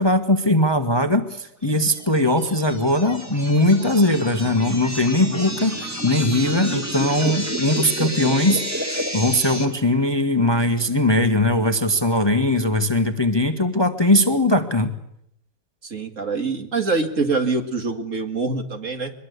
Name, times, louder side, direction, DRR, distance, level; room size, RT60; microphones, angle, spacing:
voice 1, 0.0-14.9, left 1 dB, 15° left, 7 dB, 1.3 m, -20 dB
sound 1, 1.9-9.7, right 1 dB, 10° right, 2.5 m, -30 dB
voice 2, 15.8-19.1, right 3 dB, 50° right, 6 dB, 2.4 m, -24 dB
23.0 x 22.0 x 8.1 m, 0.74 s
omnidirectional pair, 1.7 m